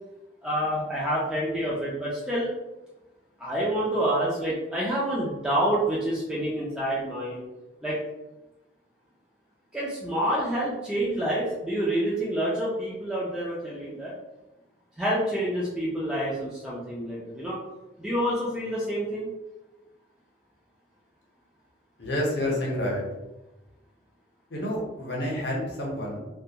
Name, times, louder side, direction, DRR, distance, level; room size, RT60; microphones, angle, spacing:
voice 1, 0.4-2.5 3.4-7.4 7.8-8.0 9.7-14.1 15.0-17.6 18.0-19.3, right 1 dB, 5° right, -8 dB, 0.4 m, -28 dB
voice 2, 22.0-23.0 24.5-26.2, left 1 dB, 65° left, -2 dB, 0.7 m, -29 dB
2.2 x 2.2 x 2.7 m, 1.0 s
head